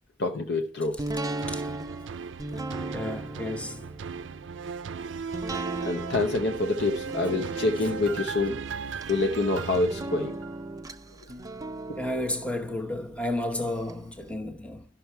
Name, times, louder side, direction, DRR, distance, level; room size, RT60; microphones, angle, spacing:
voice 1, 0.2-1.0 5.8-8.6 9.1-10.4 11.9-12.0, left 2 dB, 60° left, 0.8 m, -26 dB
sound 1, 1.0-13.9 14.3-14.4, right 2 dB, 20° right, 0.5 m, -38 dB
sound 2, 1.4-10.8 11.3-11.4, right 6 dB, 70° right, 0.4 m, -37 dB
voice 2, 2.9-3.9 12.0-14.9, left 1 dB, 5° left, 1.0 m, -32 dB
12.0 x 5.9 x 4.5 m
head